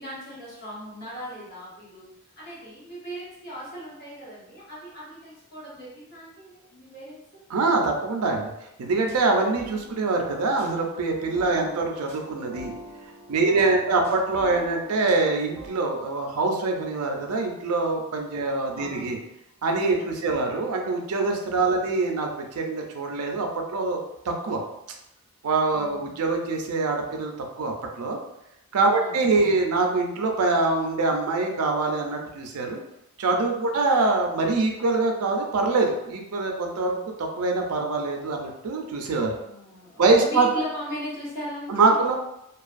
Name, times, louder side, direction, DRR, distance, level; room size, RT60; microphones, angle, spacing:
voice 1, 0.0-2.1 2.4-7.2 11.5-11.7 13.3-14.2 18.4-19.3 20.0-20.5 25.8-26.2 28.9-29.5 33.7-33.8 39.4-42.1, equal, 45° left, -8 dB, 1.2 m, -39 dB
voice 2, 7.5-8.5 8.8-12.7 13.3-19.2 19.6-24.6 25.4-28.2 28.7-32.8 33.2-39.4 40.0-40.5 41.7-42.2, right 3 dB, 90° right, 2 dB, 0.5 m, -24 dB
sound 1, 9.1-15.7, equal, 10° left, 0.7 m, -43 dB
2.5 x 2.3 x 2.4 m, 0.85 s
head